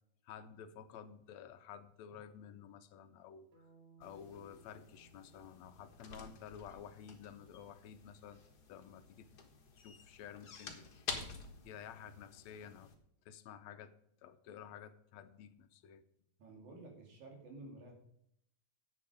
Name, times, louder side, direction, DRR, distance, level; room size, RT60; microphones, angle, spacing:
voice 1, 0.3-3.7 4.0-8.4 8.7-9.3 9.8-10.9 11.6-13.0 13.3-13.9 14.2-16.0, left 8 dB, 75° left, 11 dB, 1.9 m, -52 dB
sound 1, 3.5-7.6, right 5 dB, 40° right, 2.0 m, -67 dB
sound 2, 4.0-13.0, left 4 dB, 45° left, 1.6 m, -50 dB
voice 2, 16.4-18.0, right 2 dB, 80° right, 1 dB, 4.1 m, -52 dB
10.5 x 7.7 x 5.0 m, 0.73 s
omnidirectional pair, 3.3 m